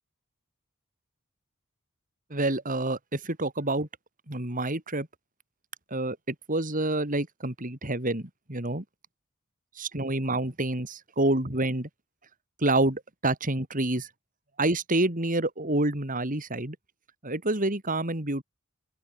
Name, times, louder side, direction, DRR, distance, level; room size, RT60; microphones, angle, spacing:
voice 1, 2.3-3.9 4.3-5.1 5.9-6.2 6.5-8.8 9.8-11.9 12.6-14.1 14.6-16.8 17.2-18.4, right 2 dB, 40° right, 3.8 m, -28 dB
open air
head